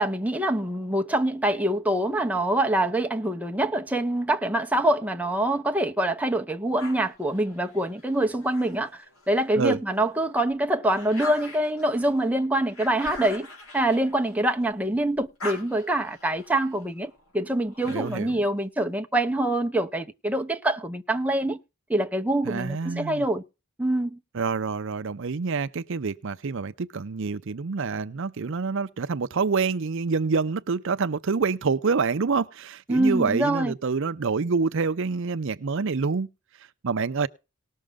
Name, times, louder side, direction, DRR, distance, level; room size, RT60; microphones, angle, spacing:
voice 1, 0.0-13.5 13.7-21.6 21.9-23.4 23.8-24.2 32.9-33.7, right 1 dB, 5° right, 0.8 m, -25 dB
sound 1, 6.8-9.5 10.0-14.8 15.1-18.4, left 2 dB, 75° left, 4.1 m, -43 dB
voice 2, 17.9-18.4 22.5-23.2 24.3-36.3 36.8-37.3, right 4 dB, 60° right, 0.6 m, -27 dB
19.0 x 6.4 x 3.5 m
head